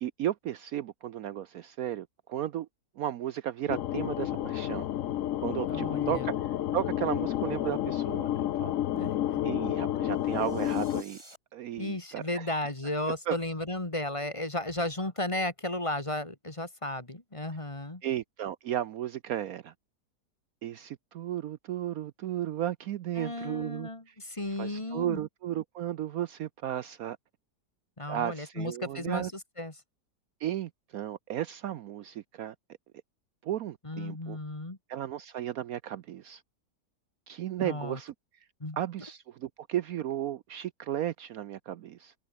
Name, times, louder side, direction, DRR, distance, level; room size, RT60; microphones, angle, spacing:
voice 1, 0.0-2.7 3.0-4.9 5.4-8.8 9.4-11.2 11.5-12.5 13.3-13.4 18.0-19.7 20.6-24.1 24.6-27.2 28.1-29.3 30.4-32.5 33.4-34.4 34.9-36.4 37.3-38.1 38.8-42.1, right 11 dB, 65° right, 1.0 m, -34 dB
sound 1, 3.7-11.0, left 12 dB, 60° left, 0.9 m, -30 dB
voice 2, 5.7-6.3 8.9-9.4 11.8-18.0 23.2-25.2 28.0-29.3 29.6-29.7 33.8-34.8 37.6-38.0 38.6-38.8, left 1 dB, 20° left, 2.1 m, -34 dB
sound 2, 10.2-11.4, right 1 dB, 15° right, 3.9 m, -53 dB
omnidirectional pair, 1.8 m